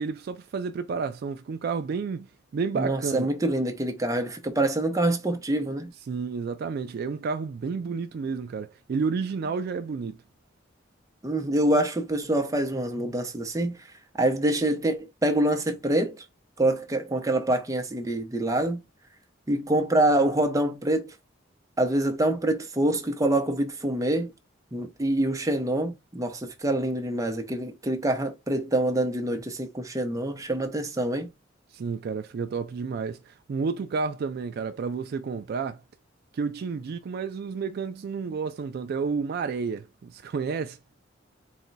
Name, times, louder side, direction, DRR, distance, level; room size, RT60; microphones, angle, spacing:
voice 1, 0.0-3.3 6.1-10.2 31.7-35.8 36.3-40.8, right 5 dB, 55° right, 0.3 m, -31 dB
voice 2, 2.7-5.9 11.2-13.8 14.2-16.2 16.6-18.8 19.5-21.1 21.8-24.3 24.7-31.3, right 1 dB, 15° right, 0.7 m, -25 dB
4.1 x 2.2 x 3.9 m
head